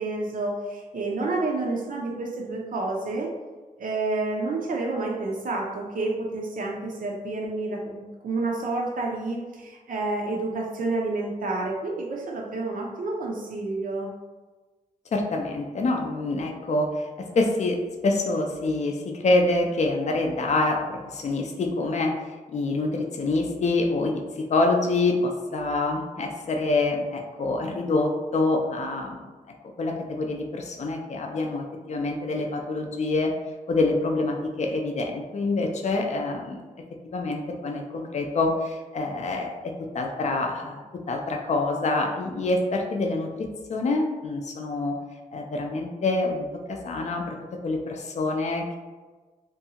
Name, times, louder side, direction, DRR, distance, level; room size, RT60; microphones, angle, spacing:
voice 1, 0.0-3.3 3.8-14.1, right 2 dB, 70° right, -1 dB, 0.5 m, -29 dB
voice 2, 15.1-17.1 17.3-17.8 18.0-29.2 29.8-33.3 33.7-36.6 37.0-45.0 45.3-47.4 47.6-48.8, left 2 dB, 50° left, 2 dB, 0.4 m, -26 dB
2.6 x 2.3 x 2.8 m, 1.3 s
wide cardioid pair, 95°, 15 cm